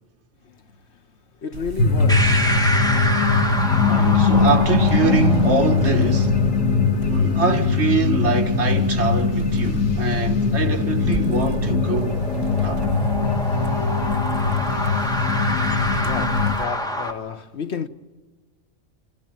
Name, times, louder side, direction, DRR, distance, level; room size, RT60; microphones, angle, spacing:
voice 1, 0.4-1.0 1.4-2.7 3.7-4.3 14.6-14.8 16.0-17.9, left 6 dB, 60° left, 1.2 m, -33 dB
sound 1, 1.5-16.7, right 5 dB, 80° right, 1.5 m, -35 dB
sound 2, 1.8-16.5, left 5 dB, 85° left, 1.5 m, -21 dB
sound 3, 2.1-17.1, equal, 5° left, 1.9 m, -29 dB
voice 2, 3.8-6.5 7.1-12.2 12.6-12.9, right 5 dB, 60° right, 1.7 m, -24 dB
28.5 x 15.0 x 8.8 m
omnidirectional pair, 1.3 m